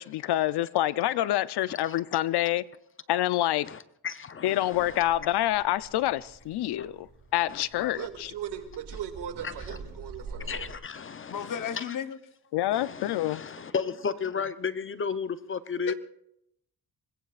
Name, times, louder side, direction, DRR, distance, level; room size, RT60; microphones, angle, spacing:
voice 1, 0.0-2.6 3.1-3.7 4.4-7.1 7.3-8.3 12.5-13.4, left 14 dB, 75° left, 0.7 m, -27 dB
voice 2, 3.6-5.0 6.8-6.9 7.5-7.6 9.7-9.8 10.5-12.0 12.7-15.9, left 6 dB, 30° left, 0.7 m, -34 dB
sound 1, 4.7-10.7, right 3 dB, 45° right, 8.0 m, -46 dB
voice 3, 7.9-10.7, right 9 dB, 85° right, 2.3 m, -38 dB
voice 4, 11.3-12.2 15.9-16.0, left 8 dB, 50° left, 1.1 m, -34 dB
25.5 x 21.0 x 2.5 m
cardioid pair, 135°, 40 cm